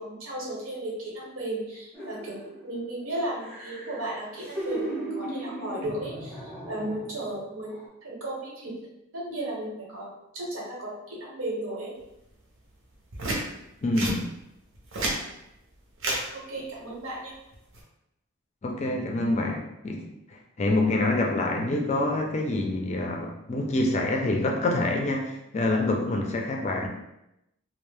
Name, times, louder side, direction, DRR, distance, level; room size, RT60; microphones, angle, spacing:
voice 1, 0.0-8.7 9.1-10.1 10.3-11.9 16.3-17.3, right 1 dB, 85° right, -4 dB, 1.0 m, -35 dB
sound 1, 1.9-2.7 3.1-7.3 7.7-7.9, right 1 dB, 5° left, 0.7 m, -37 dB
sound 2, 13.1-13.4 13.9-14.2 14.7-15.2 16.0-16.2 17.5-17.8, right 1 dB, 60° right, 0.6 m, -29 dB
voice 2, 13.8-14.3 18.6-26.9, left 2 dB, 35° left, 1 dB, 0.4 m, -26 dB
2.6 x 2.0 x 3.2 m, 0.86 s
head